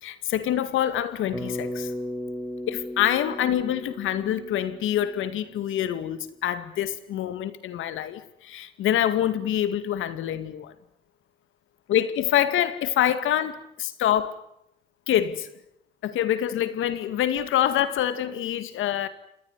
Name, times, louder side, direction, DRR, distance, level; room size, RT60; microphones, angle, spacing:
voice 1, 0.0-1.9 2.7-10.7 11.9-14.4 15.1-15.5 16.0-19.1, left 11 dB, 85° left, 2.3 m, -26 dB
Bass guitar, 1.3-5.7, left 1 dB, 10° right, 7.6 m, -36 dB
27.0 x 20.5 x 9.9 m
cardioid pair, 90°, 20 cm